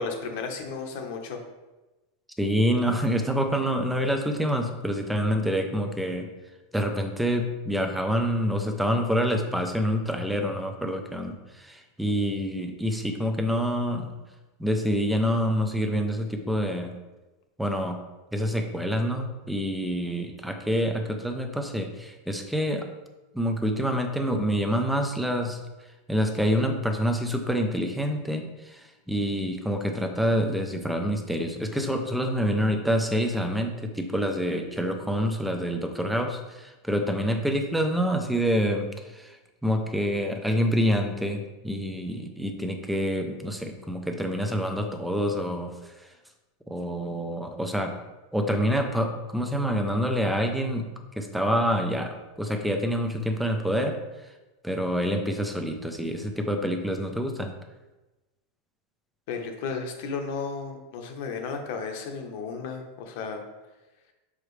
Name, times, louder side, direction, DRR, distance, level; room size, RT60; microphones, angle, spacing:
voice 1, 0.0-1.4 59.3-63.4, left 5 dB, 60° left, 4 dB, 1.0 m, -33 dB
voice 2, 2.4-6.3 6.7-14.1 14.6-16.9 17.6-18.0 18.3-22.9 23.3-25.6 26.1-28.8 29.1-39.4 39.6-45.7 46.7-47.9 48.3-50.9 51.1-54.0 54.6-57.5, equal, ahead, 5 dB, 0.5 m, -27 dB
6.0 x 4.9 x 3.2 m, 1.1 s
supercardioid pair, 155°, 0 cm